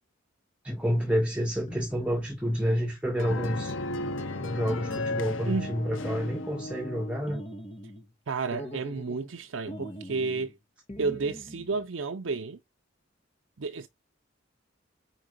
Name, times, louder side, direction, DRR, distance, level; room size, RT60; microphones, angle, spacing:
voice 1, 0.6-3.7 4.4-7.4, equal, 5° right, 1.3 m, -29 dB
sound 1, 1.7-2.5 3.3-4.2 4.7-5.7 6.0-6.8 7.3-8.1 8.5-9.4 9.7-10.5 10.9-11.9, equal, 35° left, 1.5 m, -42 dB
sound 2, 3.2-7.4, left 2 dB, 80° left, 1.0 m, -35 dB
voice 2, 5.5-5.8 8.3-10.5 11.0-12.6 13.6-13.9, right 4 dB, 85° right, 0.7 m, -31 dB
4.8 x 4.7 x 5.0 m
head